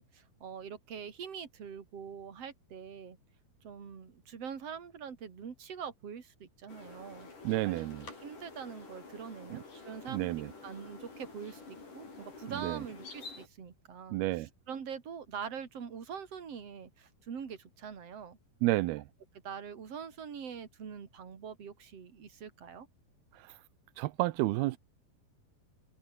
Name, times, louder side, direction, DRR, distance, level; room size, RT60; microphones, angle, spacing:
voice 1, 0.0-3.2 3.6-7.8 8.2-10.3 10.6-18.4 19.4-22.9, right 7 dB, 40° right, 3.8 m, -44 dB
sound 1, 6.7-13.5, left 4 dB, 55° left, 8.8 m, -49 dB
voice 2, 7.4-8.1 9.5-9.6 10.1-10.5 12.5-12.8 14.1-14.5 18.6-19.1 23.3-23.6 24.0-24.8, right 19 dB, 90° right, 2.7 m, -31 dB
omnidirectional pair, 4.4 m